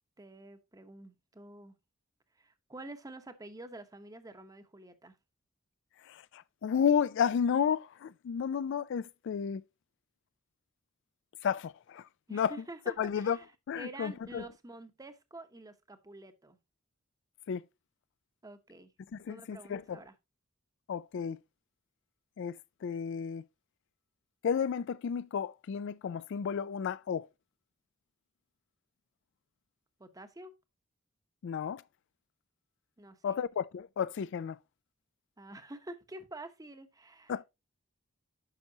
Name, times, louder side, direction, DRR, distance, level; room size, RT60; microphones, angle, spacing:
voice 1, 0.2-1.8 2.4-5.1 12.3-16.6 18.4-18.9 19.3-20.1 30.0-30.5 33.0-33.4 35.4-37.3, right 2 dB, 15° right, 0.9 m, -48 dB
voice 2, 6.0-9.6 11.4-12.6 13.0-13.4 13.7-14.4 17.5-17.6 19.1-20.0 20.9-21.4 22.4-23.4 24.4-27.3 31.4-31.8 33.2-34.6 37.3-37.4, left 7 dB, 60° left, 0.3 m, -32 dB
9.8 x 5.9 x 2.7 m
head